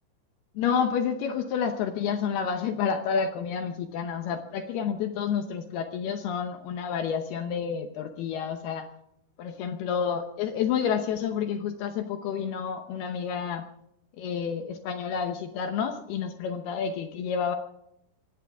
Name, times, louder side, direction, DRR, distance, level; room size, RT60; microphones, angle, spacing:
voice 1, 0.6-8.9 9.4-13.6 14.2-17.6, left 7 dB, 80° left, 6 dB, 2.3 m, -29 dB
24.0 x 17.0 x 3.5 m, 0.75 s
omnidirectional pair, 5.8 m